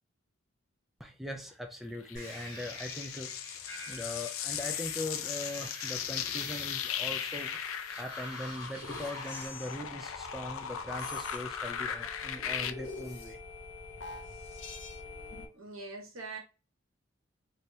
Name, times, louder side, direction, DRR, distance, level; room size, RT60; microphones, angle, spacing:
voice 1, 1.0-3.3 3.9-7.6 8.0-13.4, left 1 dB, ahead, 0.4 m, -40 dB
sound 1, 2.1-12.7, left 8 dB, 85° left, 0.4 m, -38 dB
sound 2, 2.1-9.5, left 1 dB, 20° left, 1.6 m, -47 dB
sound 3, 3.7-15.5, left 4 dB, 60° left, 0.9 m, -46 dB
voice 2, 15.5-16.4, right 3 dB, 85° right, 1.2 m, -42 dB
3.4 x 2.7 x 2.6 m
head